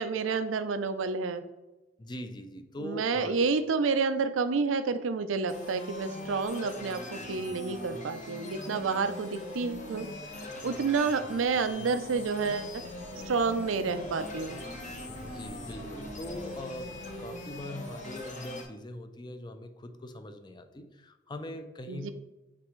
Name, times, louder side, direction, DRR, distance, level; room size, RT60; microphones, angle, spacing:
voice 1, 0.0-1.4 2.8-10.1 10.6-12.8 13.3-14.6 21.9-22.1, right 4 dB, 90° right, 11 dB, 0.5 m, -29 dB
voice 2, 2.0-3.4 8.9-9.0 15.2-22.1, left 1 dB, 25° left, 7 dB, 0.5 m, -42 dB
sound 1, 5.5-18.6, left 1 dB, 40° left, 0.9 m, -41 dB
sound 2, 9.4-18.3, equal, 80° left, 1.5 m, -51 dB
9.6 x 3.4 x 3.1 m, 1.1 s
head